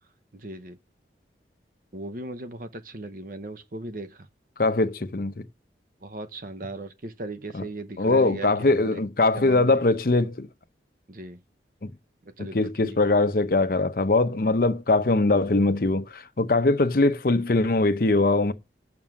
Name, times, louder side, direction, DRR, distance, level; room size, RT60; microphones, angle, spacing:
voice 1, 0.3-0.8 1.9-4.3 6.0-9.0 9.3-9.8 11.1-11.4 12.2-13.0, right 2 dB, 50° right, 0.9 m, -38 dB
voice 2, 4.6-5.4 7.5-7.6 8.0-10.5 11.8-11.9 12.4-18.5, left 2 dB, 55° left, 0.7 m, -22 dB
7.2 x 6.2 x 7.1 m
head